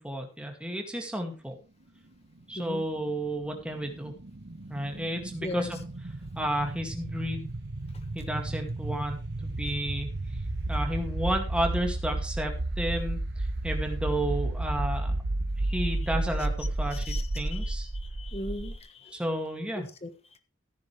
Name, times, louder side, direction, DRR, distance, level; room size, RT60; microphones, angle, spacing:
voice 1, 0.0-1.6 2.5-4.1 4.7-5.7 6.4-7.5 8.1-10.1 10.7-15.1 15.7-17.9 19.1-19.9, right 1 dB, 5° right, 3 dB, 2.1 m, -32 dB
sound 1, 2.9-18.8, right 2 dB, 60° right, 1.0 m, -32 dB
voice 2, 16.9-17.7 18.0-19.2 20.0-20.1, left 1 dB, 30° left, 9 dB, 1.3 m, -39 dB
15.0 x 9.6 x 3.3 m, 0.32 s
head